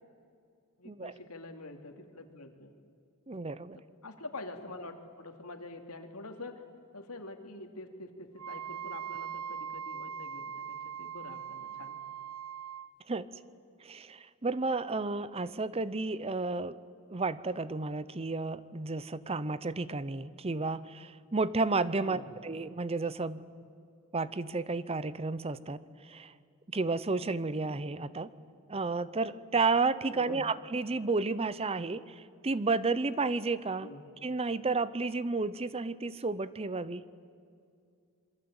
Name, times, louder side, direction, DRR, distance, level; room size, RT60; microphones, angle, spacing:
voice 1, 0.8-2.7 3.7-6.6 6.9-12.0 22.0-22.3 30.1-30.4 33.8-34.0, left 2 dB, 85° left, 5 dB, 2.7 m, -46 dB
voice 2, 3.3-3.8 13.1-13.3 13.8-16.8 17.1-23.4 24.1-26.3 26.7-28.3 28.7-33.9 34.2-37.0, right 3 dB, 25° right, 16 dB, 0.7 m, -32 dB
Wind instrument woodwind instrument, 8.4-12.9, right 8 dB, 80° right, 0.8 m, -41 dB
27.5 x 23.0 x 8.9 m, 2.3 s
head